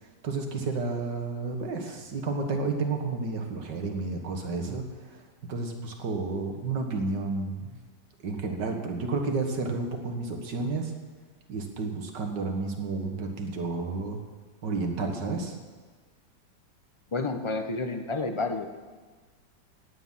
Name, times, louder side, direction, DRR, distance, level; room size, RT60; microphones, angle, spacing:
voice 1, 0.0-7.8 8.2-10.9 11.5-14.2 14.6-15.6, right 3 dB, 90° right, 4 dB, 2.2 m, -31 dB
voice 2, 17.1-18.7, left 3 dB, 30° left, 6 dB, 0.5 m, -30 dB
16.0 x 9.7 x 5.7 m, 1.4 s
omnidirectional pair, 1.8 m